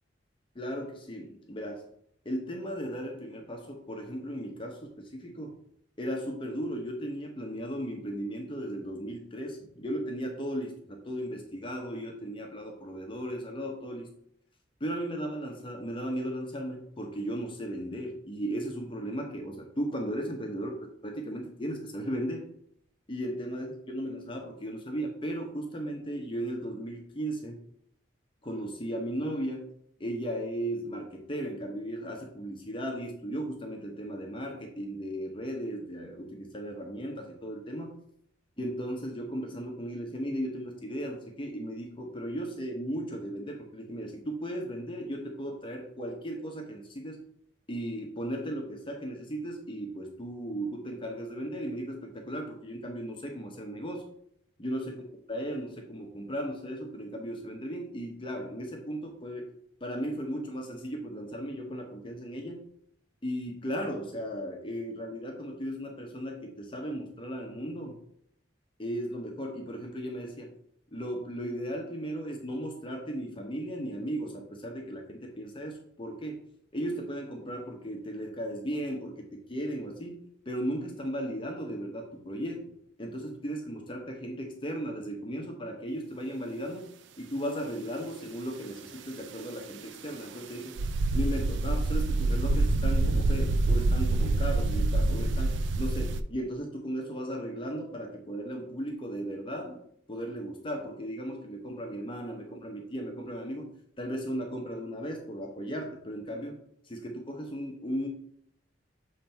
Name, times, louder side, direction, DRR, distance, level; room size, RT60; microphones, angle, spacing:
voice 1, 0.5-1.8 2.2-5.6 6.0-14.1 14.8-22.5 23.1-27.6 28.4-29.6 30.0-37.9 38.6-47.2 47.7-54.0 54.6-55.0 55.3-59.5 59.8-62.6 63.2-68.0 68.8-70.5 70.9-76.4 76.7-80.2 80.5-82.6 83.0-86.8 87.2-90.8 91.1-99.8 100.1-103.7 104.0-106.6 106.9-108.1, equal, 25° left, 1 dB, 0.9 m, -36 dB
sound 1, 90.8-96.2, right 2 dB, 70° right, 0.4 m, -26 dB
7.1 x 3.3 x 4.5 m, 0.67 s
head